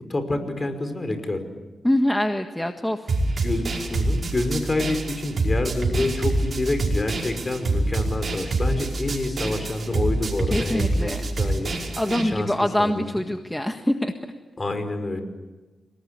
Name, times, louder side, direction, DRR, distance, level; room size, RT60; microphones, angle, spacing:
voice 1, 0.1-1.4 3.2-11.7 12.0-13.1 14.6-15.2, left 2 dB, 30° left, 8 dB, 5.2 m, -28 dB
voice 2, 1.8-3.1 10.5-11.2 12.0-14.1, left 1 dB, 10° left, 5 dB, 1.6 m, -24 dB
sound 1, 3.1-12.2, right 2 dB, 55° right, 5.1 m, -26 dB
30.0 x 19.0 x 9.7 m, 1.2 s
cardioid pair, 75°, 0 cm